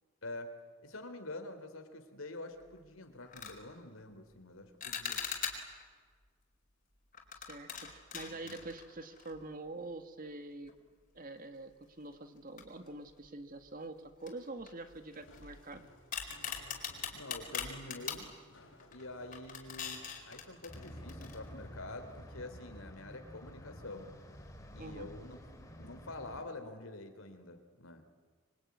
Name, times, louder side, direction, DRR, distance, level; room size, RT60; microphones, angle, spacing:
voice 1, 0.8-5.2 8.3-8.6 17.1-18.3 18.9-24.1 24.7-25.4 25.8-28.0, left 2 dB, 85° left, 7 dB, 3.4 m, -47 dB
sound 1, 2.6-2.8 3.2-3.6 4.8-5.8 7.1-9.5 9.8-9.9 10.7-10.8 12.6-13.2 13.6-13.7 14.2-15.7 16.1-18.3 18.8-19.0 19.3-21.4, left 7 dB, 40° left, 4.3 m, -42 dB
voice 2, 7.5-10.7 11.2-15.9 24.8-25.1, right 2 dB, 45° right, 8 dB, 1.9 m, -45 dB
Walk footsteps, 15.0-22.2, left 1 dB, 70° left, 5.9 m, -60 dB
sound 2, 20.7-26.4, equal, 15° left, 4.6 m, -50 dB
26.0 x 24.0 x 9.6 m, 1.5 s
head